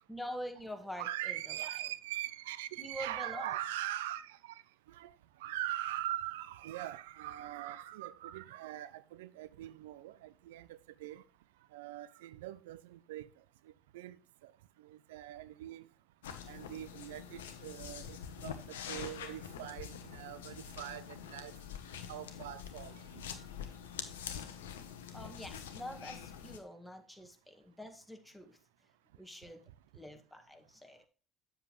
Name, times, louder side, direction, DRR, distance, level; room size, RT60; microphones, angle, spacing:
voice 1, 0.1-1.3 2.8-3.5 25.1-28.6 29.2-29.6 29.9-31.0, equal, 5° left, 1.8 m, -45 dB
voice 2, 1.0-4.6 4.9-5.1 5.4-11.2 11.7-13.3 13.9-14.2 14.4-14.5 14.8-15.9 16.5-21.5 22.1-23.3, right 13 dB, 80° right, 0.4 m, -42 dB
sound 1, 16.2-26.6, left 8 dB, 85° left, 0.9 m, -45 dB
7.9 x 7.5 x 3.1 m
hypercardioid pair, 60°, 0 cm